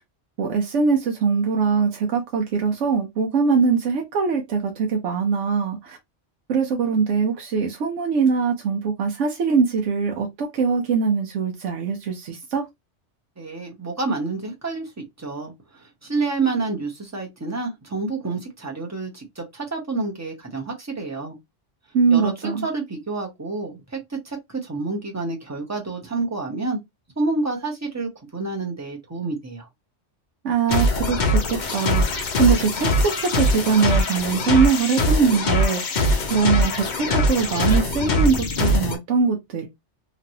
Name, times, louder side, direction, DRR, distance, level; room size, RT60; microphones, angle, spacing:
voice 1, 0.4-6.0 6.5-12.7 21.9-22.6 30.4-36.0 36.3-39.7, right 5 dB, 85° right, 1.0 m, -22 dB
voice 2, 13.4-14.9 15.2-15.5 15.8-21.4 22.1-26.8 27.2-29.7, right 3 dB, 15° right, 0.8 m, -28 dB
sound 1, 30.7-39.0, left 1 dB, 50° left, 0.7 m, -22 dB
3.0 x 2.6 x 2.7 m
omnidirectional pair, 1.2 m